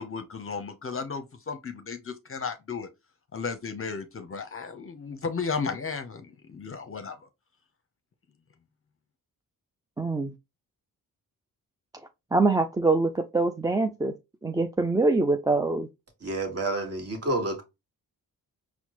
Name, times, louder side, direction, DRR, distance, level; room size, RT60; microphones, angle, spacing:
voice 1, 0.0-2.9 3.3-7.3, left 5 dB, 35° left, 0.6 m, -34 dB
voice 2, 10.0-10.3 12.3-14.1 14.4-15.9, right 3 dB, 10° right, 0.3 m, -24 dB
voice 3, 16.2-17.6, right 2 dB, 40° right, 1.4 m, -29 dB
4.3 x 2.1 x 3.0 m
cardioid pair, 55°, 38 cm